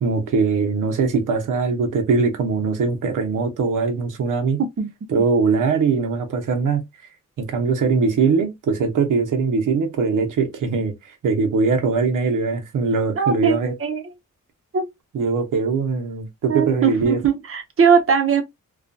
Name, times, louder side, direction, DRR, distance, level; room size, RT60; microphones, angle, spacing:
voice 1, 0.0-4.6 5.1-6.8 7.4-13.7 15.1-17.2, right 4 dB, 75° right, 0.8 m, -21 dB
voice 2, 13.2-14.0 14.7-14.9 16.5-18.4, right 6 dB, 45° right, 0.8 m, -20 dB
2.4 x 2.3 x 2.5 m
cardioid pair, 85°, 32 cm